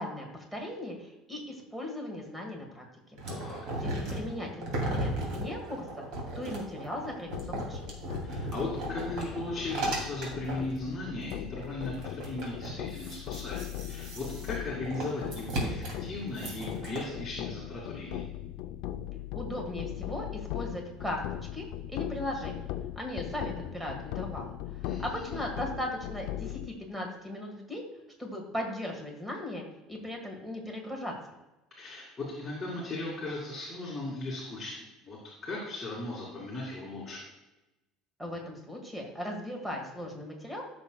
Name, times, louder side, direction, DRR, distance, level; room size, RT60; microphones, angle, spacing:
voice 1, 0.0-2.8 3.8-5.8 6.3-7.8 19.3-21.2 21.5-27.8 28.2-31.1 38.2-40.6, left 1 dB, 5° right, 2 dB, 1.6 m, -38 dB
sound 1, 3.2-10.7 11.3-11.4 11.6-17.0, right 1 dB, 60° right, 2.6 m, -36 dB
voice 2, 3.3-3.6 8.2-18.3 24.8-25.3 31.8-35.2 35.4-37.2, left 2 dB, 10° left, -7 dB, 2.3 m, -37 dB
sound 2, 7.3-26.7, left 12 dB, 65° left, 0.5 m, -39 dB
14.0 x 6.3 x 2.3 m, 0.99 s
cardioid pair, 160°, 0 cm